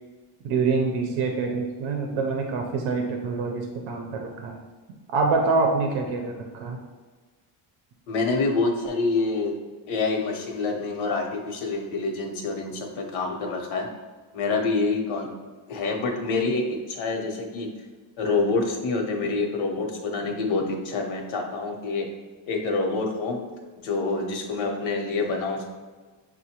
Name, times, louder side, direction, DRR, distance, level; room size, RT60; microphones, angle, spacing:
voice 1, 0.4-4.6 5.1-6.8, right 4 dB, 90° right, 3 dB, 0.6 m, -26 dB
voice 2, 8.1-9.5 9.9-13.9 14.3-15.3 15.7-17.7 18.2-22.1 22.5-23.4 23.8-25.7, left 3 dB, 80° left, 2 dB, 0.9 m, -26 dB
6.3 x 2.2 x 2.8 m, 1.4 s
cardioid pair, 160°, 47 cm